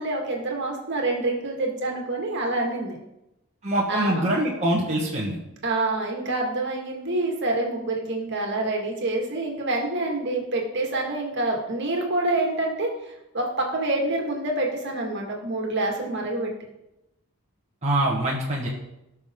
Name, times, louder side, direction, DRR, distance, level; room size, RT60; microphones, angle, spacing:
voice 1, 0.0-3.0 3.9-4.2 5.6-12.9 13.3-16.5, right 2 dB, 50° right, 0 dB, 2.1 m, -27 dB
voice 2, 3.6-5.4 17.8-18.7, right 1 dB, 30° right, -4 dB, 1.5 m, -24 dB
18.0 x 6.3 x 3.8 m, 0.91 s
head